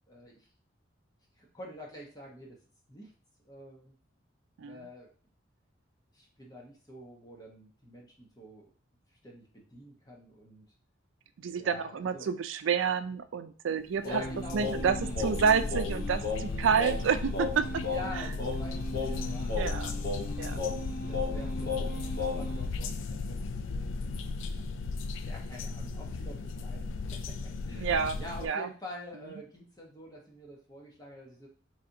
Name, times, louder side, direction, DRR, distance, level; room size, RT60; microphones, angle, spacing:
voice 1, 0.1-0.5 1.4-2.6 2.9-3.1 3.4-3.9 4.6-5.1 6.1-8.7 9.2-10.6 11.6-12.3 14.0-15.1 17.7-20.3 21.1-24.2 25.2-31.5, left 1 dB, 20° left, -2 dB, 1.0 m, -47 dB
voice 2, 11.4-14.2 14.5-15.0 15.2-17.7 19.5-19.9 20.4-20.6 27.8-28.7, right 6 dB, 75° right, 10 dB, 0.4 m, -29 dB
sound 1, 13.9-28.5, left 3 dB, 80° left, 0.4 m, -36 dB
Singing, 14.0-22.6, left 3 dB, 50° left, 0.9 m, -36 dB
4.2 x 3.2 x 2.7 m, 0.42 s
head